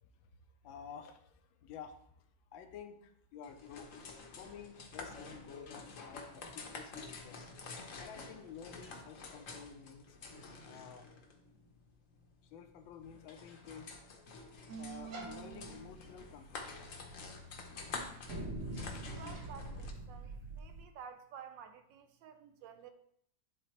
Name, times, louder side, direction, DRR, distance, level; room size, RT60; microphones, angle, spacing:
voice 1, 0.6-2.0 2.5-3.9 4.4-7.5 8.0-10.2 10.6-11.1 12.4-13.9 14.8-17.2 18.9-19.1, left 7 dB, 80° left, 7 dB, 1.4 m, -51 dB
sound 1, 3.4-19.9, left 4 dB, 55° left, 1.0 m, -49 dB
sound 2, 14.7-20.8, right 2 dB, 50° right, 1.0 m, -45 dB
voice 2, 19.1-22.9, right 7 dB, 75° right, 8 dB, 1.2 m, -52 dB
10.5 x 3.9 x 3.0 m, 0.68 s
omnidirectional pair, 2.2 m